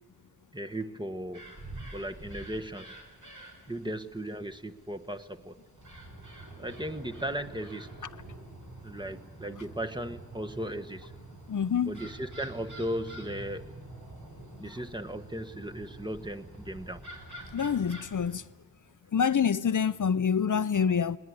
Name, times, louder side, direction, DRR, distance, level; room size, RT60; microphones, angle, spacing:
voice 1, 0.5-1.5 1.9-3.0 3.6-5.6 6.6-7.9 8.8-11.1 11.8-13.7 14.6-17.1, right 1 dB, 15° right, 1.3 m, -37 dB
sound 1, 1.3-18.4, right 1 dB, 60° right, 5.7 m, -47 dB
voice 2, 11.5-11.9 17.5-18.4 19.1-21.2, left 7 dB, 65° left, 0.7 m, -26 dB
20.5 x 20.0 x 9.5 m
wide cardioid pair, 80°, 34 cm